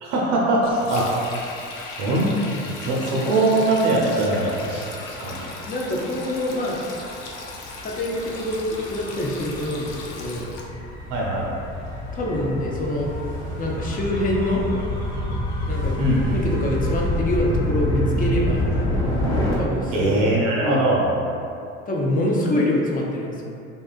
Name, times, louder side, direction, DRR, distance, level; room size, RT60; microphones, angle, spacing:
voice 1, 0.0-1.1 2.0-2.4 2.6-4.8 5.2-5.4 11.1-11.5 16.0-16.4 19.9-21.0, right 2 dB, 60° right, -4 dB, 0.5 m, -21 dB
Sink (filling or washing), 0.6-10.7, left 3 dB, 80° left, 0.5 m, -37 dB
Gull seagull / Waves surf / Siren, 4.9-19.5, left 1 dB, 45° left, 0.9 m, -28 dB
voice 2, 5.6-6.8 7.8-10.5 12.1-13.1 13.6-14.6 15.7-15.9 16.3-18.7 19.5-20.2 20.6-20.9 21.9-23.4, left 1 dB, 25° left, -2 dB, 0.4 m, -25 dB
2.7 x 2.2 x 2.4 m, 2.6 s
hypercardioid pair, 70°, 36 cm